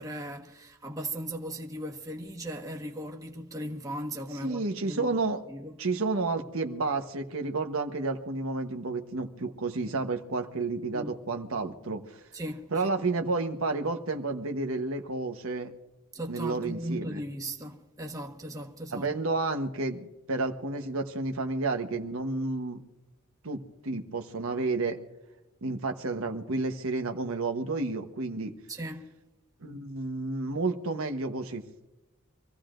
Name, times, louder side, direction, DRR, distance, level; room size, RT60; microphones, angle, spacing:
voice 1, 0.0-5.2 5.5-5.7 10.9-11.1 12.3-12.7 16.1-19.1 28.7-29.1, right 1 dB, 15° right, 1.3 m, -37 dB
voice 2, 4.4-5.4 5.8-12.2 12.7-15.7 16.3-17.2 18.9-22.8 23.4-25.0 25.6-28.5 29.6-31.6, right 3 dB, 70° right, 1.1 m, -31 dB
25.5 x 15.5 x 2.6 m
head